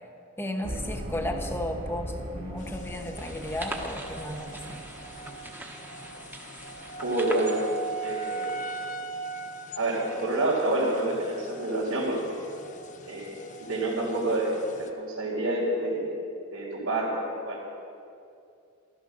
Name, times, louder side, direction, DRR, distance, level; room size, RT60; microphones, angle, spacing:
voice 1, 0.4-4.8, left 1 dB, 10° left, 5 dB, 1.1 m, -34 dB
sound 1, 0.6-5.4, equal, 30° right, 1.5 m, -38 dB
sound 2, 2.6-14.9, right 3 dB, 35° left, 0.9 m, -40 dB
sound 3, 3.2-8.9, right 1 dB, 10° right, 1.1 m, -42 dB
voice 2, 7.0-7.6 8.0-8.5 9.8-12.4 13.1-16.1 16.5-17.6, right 1 dB, 75° right, -9 dB, 3.6 m, -28 dB
14.5 x 13.0 x 6.6 m, 2.5 s
head